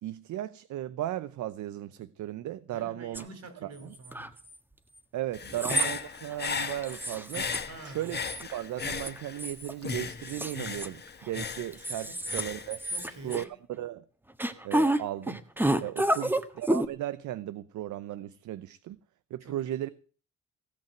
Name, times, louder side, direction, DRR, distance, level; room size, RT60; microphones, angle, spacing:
voice 1, 0.0-3.2 3.6-3.9 5.1-7.5 7.8-12.8 13.2-14.0 14.6-15.4 15.8-19.0 19.3-19.9, right 13 dB, 75° right, 0.7 m, -36 dB
voice 2, 2.7-4.4 5.4-5.6 7.7-8.2 12.1-12.2 12.8-13.5 16.1-16.4 19.4-19.7, right 3 dB, 60° right, 4.0 m, -47 dB
sound 1, 3.1-3.2 3.9-4.5 5.4-5.9 6.3-6.4 6.8-7.6 7.9-8.5 8.8-9.7 10.3-11.3 11.7-12.4 12.7-13.5 14.4-15.0 15.3-16.9, right 1 dB, 5° right, 1.5 m, -29 dB
Human voice / Breathing, 5.3-9.5 9.8-13.4, left 5 dB, 35° left, 1.4 m, -37 dB
16.5 x 5.8 x 9.0 m
cardioid pair, 90°, 30 cm